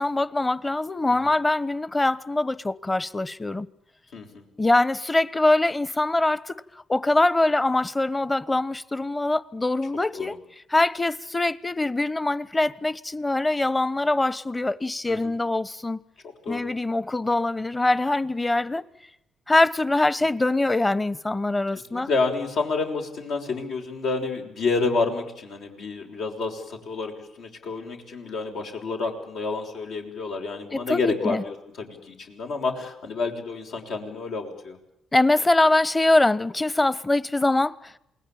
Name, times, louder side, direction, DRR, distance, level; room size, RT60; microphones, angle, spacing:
voice 1, 0.0-3.7 4.6-6.6 6.9-10.4 10.7-16.0 16.5-18.8 19.5-22.1 30.9-31.4 35.1-38.0, left 2 dB, 15° left, 1.1 m, -23 dB
voice 2, 4.1-4.5 9.8-10.3 15.1-15.3 16.2-16.7 21.7-34.8, left 3 dB, 75° left, 6.3 m, -29 dB
28.0 x 20.5 x 8.9 m
cardioid pair, 90°, 0 cm